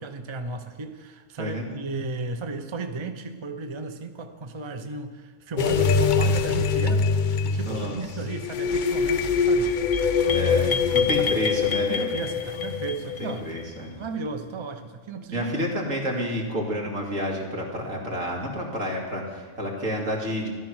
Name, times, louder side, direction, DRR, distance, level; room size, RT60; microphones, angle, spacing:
voice 1, 0.0-9.8 10.3-11.3 11.9-13.5 14.0-15.7, right 3 dB, 25° right, 7 dB, 0.7 m, -35 dB
sound 1, 5.6-13.6, left 5 dB, 50° left, 0.6 m, -24 dB
voice 2, 7.6-8.0 10.3-12.1 13.2-14.0 15.3-20.5, equal, 75° right, -1 dB, 2.9 m, -30 dB
14.0 x 12.0 x 6.3 m, 1.5 s
omnidirectional pair, 1.4 m